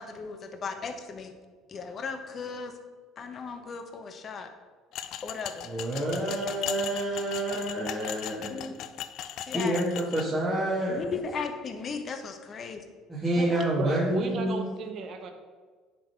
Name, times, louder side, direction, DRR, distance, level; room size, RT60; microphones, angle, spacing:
voice 1, 0.0-1.3 1.7-2.7 3.2-4.5 5.2-5.7 8.5-8.7 9.5-9.8 11.0-12.8 13.4-13.6, left 5 dB, 40° left, 6 dB, 1.0 m, -36 dB
sound 1, 4.9-10.2, left 11 dB, 65° left, 0.5 m, -38 dB
voice 2, 5.7-8.6 9.5-11.0 13.1-14.6, right 1 dB, 15° right, -7 dB, 1.8 m, -28 dB
voice 3, 13.8-15.3, right 4 dB, 50° right, 4 dB, 1.0 m, -34 dB
10.5 x 4.0 x 4.6 m, 1.4 s
supercardioid pair, 100°, 0 cm